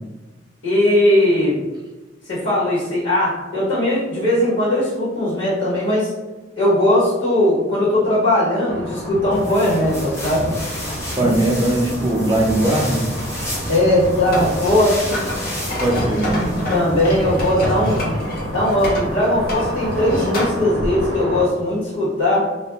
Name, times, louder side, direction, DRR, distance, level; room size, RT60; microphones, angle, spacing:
voice 1, 0.6-1.6 2.2-6.1 6.6-10.5 11.2-11.3 13.7-15.2 16.7-18.0 18.5-22.5, left 1 dB, 75° left, -10 dB, 1.2 m, -19 dB
sound 1, 8.7-21.5, equal, 80° right, 0.6 m, -30 dB
sound 2, 9.3-17.5, left 1 dB, 15° left, 0.7 m, -31 dB
voice 2, 11.1-13.0 15.8-16.4, right 1 dB, 25° right, -2 dB, 0.5 m, -19 dB
sound 3, 13.4-20.6, left 1 dB, 55° left, 0.8 m, -27 dB
2.4 x 2.2 x 3.0 m, 1.2 s
head